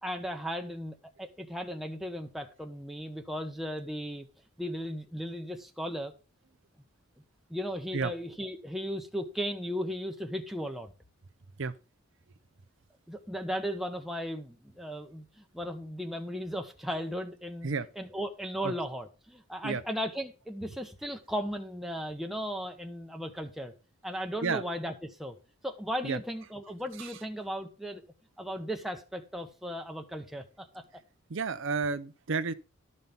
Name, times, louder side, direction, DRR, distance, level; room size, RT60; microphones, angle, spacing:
voice 1, 0.0-4.3 4.6-6.1 7.5-10.9 13.1-17.7 18.0-23.7 24.0-25.4 25.6-28.0 28.4-30.8, equal, ahead, 1.0 m, -36 dB
voice 2, 31.3-32.5, right 4 dB, 60° right, 0.6 m, -31 dB
12.5 x 5.3 x 5.8 m
head